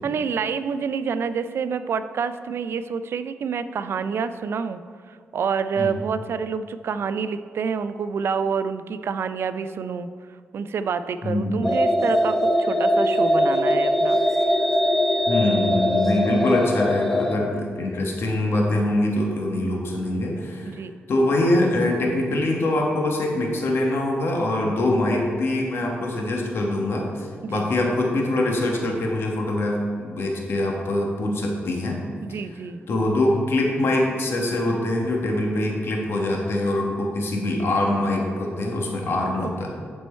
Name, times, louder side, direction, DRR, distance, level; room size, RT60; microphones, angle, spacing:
voice 1, 0.0-4.8 5.1-10.1 10.5-14.2 20.6-20.9 27.4-27.7 32.2-32.8 39.4-39.7, right 6 dB, 65° right, 12 dB, 0.3 m, -28 dB
voice 2, 11.2-11.6 15.3-20.8 21.1-32.0 32.9-39.7, left 1 dB, 60° left, 0 dB, 1.2 m, -23 dB
sound 1, 11.6-17.4, equal, 5° left, 0.6 m, -21 dB
10.0 x 4.4 x 4.4 m, 2.1 s
cardioid pair, 110°, 4 cm